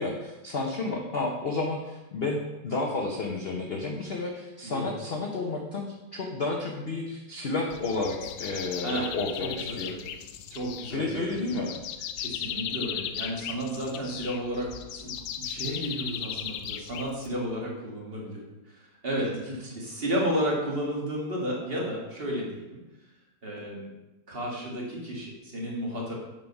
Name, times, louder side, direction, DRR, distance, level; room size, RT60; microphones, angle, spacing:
voice 1, 0.0-9.9 10.9-11.7, left 3 dB, 50° left, 1 dB, 0.7 m, -31 dB
voice 2, 4.6-4.9 8.7-9.1 9.4-10.1 10.5-11.5 12.2-22.8 23.4-23.9 24.3-26.1, equal, 35° right, -3 dB, 1.7 m, -33 dB
sound 1, 7.7-17.5, left 9 dB, 85° left, 1.3 m, -37 dB
7.4 x 4.5 x 5.3 m, 1.0 s
omnidirectional pair, 1.9 m